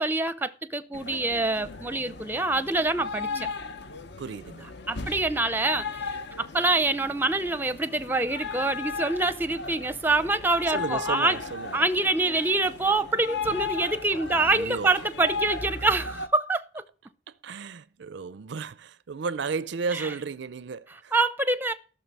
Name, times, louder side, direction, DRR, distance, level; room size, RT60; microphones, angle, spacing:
voice 1, 0.0-3.5 4.9-11.4 11.7-16.8 19.9-20.1 21.1-21.7, right 2 dB, 10° right, 0.6 m, -26 dB
sound 1, 0.9-16.3, left 4 dB, 55° left, 0.8 m, -36 dB
voice 2, 4.2-4.7 10.7-11.8 14.1-15.0 17.4-21.1, right 5 dB, 55° right, 0.4 m, -34 dB
14.5 x 6.5 x 5.4 m
head